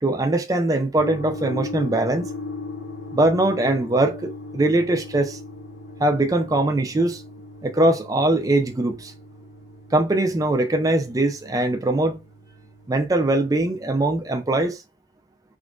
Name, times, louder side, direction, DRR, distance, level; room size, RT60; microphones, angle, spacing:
voice 1, 0.0-2.3 3.1-5.4 6.0-7.2 7.6-9.1 9.9-12.2 12.9-14.8, right 2 dB, 20° right, 0.3 m, -21 dB
sound 1, 1.0-14.6, left 2 dB, 75° left, 0.8 m, -38 dB
3.6 x 2.4 x 2.3 m
head